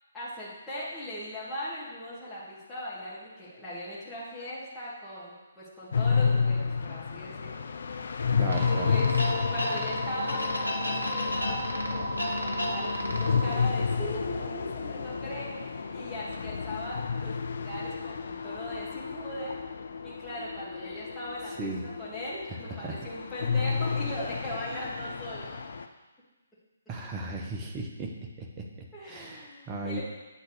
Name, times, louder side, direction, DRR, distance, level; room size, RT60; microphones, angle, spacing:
voice 1, 0.1-7.6 8.4-9.1 9.5-19.6 20.0-25.6 28.9-30.0, left 1 dB, 10° left, -10 dB, 2.2 m, -39 dB
sound 1, 5.9-25.9, left 5 dB, 55° left, 0.5 m, -31 dB
voice 2, 8.4-8.9 21.6-21.8 22.5-23.1 26.9-28.1 28.4-30.0, right 2 dB, 20° right, 1 dB, 1.0 m, -36 dB
sound 2, 8.5-13.6, equal, 90° left, 1.2 m, -32 dB
8.5 x 4.0 x 6.5 m, 1.1 s
figure-of-eight pair, 135°, 0 cm